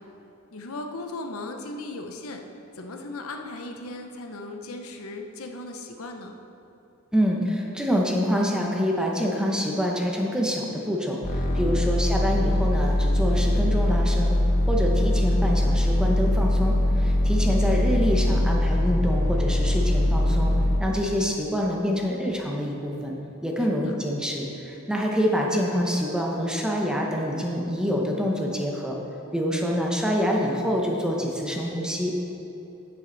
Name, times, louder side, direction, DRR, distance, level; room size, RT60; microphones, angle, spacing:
voice 1, 0.5-2.4 2.8-6.3 11.6-11.8 20.9-21.1 23.7-23.9, left 2 dB, 80° left, 4 dB, 0.8 m, -37 dB
voice 2, 7.1-14.3 14.7-20.5 20.8-23.1 23.4-29.0 29.3-32.1, equal, 5° right, -1 dB, 0.9 m, -26 dB
sound 1, 11.2-20.8, left 1 dB, 35° left, 0.9 m, -22 dB
9.5 x 8.7 x 4.0 m, 2.9 s
head